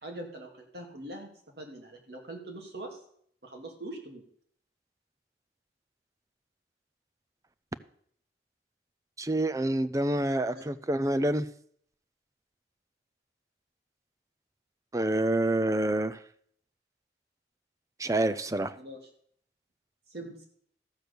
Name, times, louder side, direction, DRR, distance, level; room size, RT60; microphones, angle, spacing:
voice 1, 0.0-1.3 1.6-3.0 3.4-4.2 10.4-10.7 18.8-19.0 20.1-20.4, right 1 dB, 60° right, 2.5 m, -42 dB
voice 2, 9.2-11.5 14.9-16.2 18.0-18.7, right 1 dB, 20° right, 0.5 m, -27 dB
14.0 x 6.3 x 6.8 m
head